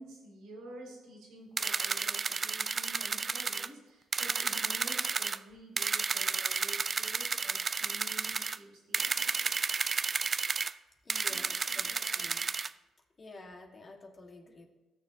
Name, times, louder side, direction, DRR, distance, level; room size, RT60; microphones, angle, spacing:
voice 1, 0.0-9.5 11.3-12.3, right 1 dB, 90° right, -2 dB, 3.4 m, -50 dB
sound 1, 1.6-3.7 4.1-5.4 5.8-8.6 8.9-10.7 11.1-12.7, right 5 dB, 35° right, 0.3 m, -32 dB
voice 2, 11.0-12.5 13.2-14.7, left 2 dB, 35° left, 2 dB, 1.6 m, -50 dB
16.0 x 6.7 x 2.8 m, 1.1 s
cardioid pair, 90°, 0 cm